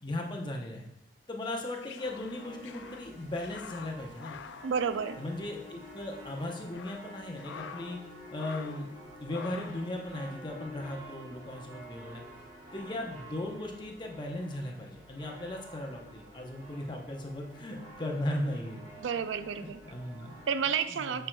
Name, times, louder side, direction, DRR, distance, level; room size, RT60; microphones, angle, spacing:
voice 1, 0.0-0.9 1.3-4.4 5.2-8.0 8.3-8.9 9.2-12.2 12.7-18.9 19.6-20.4 20.9-21.3, left 1 dB, 25° left, 0 dB, 0.7 m, -37 dB
sound 1, 1.5-5.6 5.8-6.0 6.5-8.1 8.3-8.9 9.3-9.9, left 7 dB, 80° left, 0.3 m, -47 dB
sound 2, 2.0-20.8, equal, 25° right, 1.5 m, -49 dB
voice 2, 4.6-5.2 19.0-19.8 20.5-21.3, right 6 dB, 85° right, 12 dB, 0.4 m, -31 dB
10.0 x 4.5 x 2.2 m, 0.78 s
head